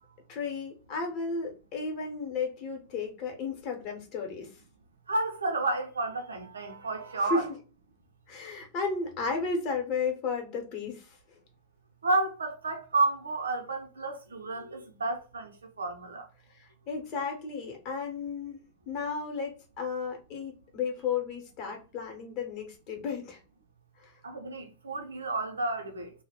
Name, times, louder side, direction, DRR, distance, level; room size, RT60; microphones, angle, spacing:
voice 1, 0.3-4.5 7.2-7.4 8.3-11.2 16.9-18.6 18.9-23.4 24.0-24.1, left 4 dB, 40° left, 0.9 m, -33 dB
voice 2, 5.1-7.5 12.0-15.5 15.8-16.2 24.2-26.1, right 2 dB, 75° right, 0.5 m, -31 dB
2.2 x 2.0 x 3.4 m
figure-of-eight pair, 90°, 0 cm